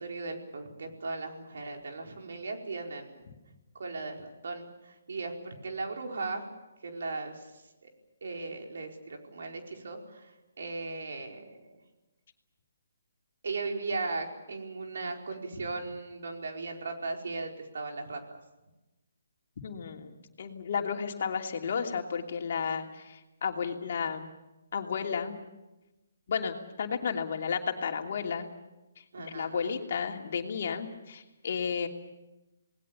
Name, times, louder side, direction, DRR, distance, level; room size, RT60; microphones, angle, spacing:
voice 1, 0.0-3.2 3.7-6.4 6.8-7.5 7.8-7.9 8.2-11.6 13.4-18.4 29.1-29.8, right 3 dB, 65° right, 2 dB, 4.8 m, -37 dB
voice 2, 19.6-24.3 24.7-25.4 26.3-28.5 29.0-31.9, left 6 dB, 55° left, 3 dB, 2.9 m, -33 dB
28.5 x 20.0 x 7.1 m, 1.0 s
figure-of-eight pair, 145°, 0 cm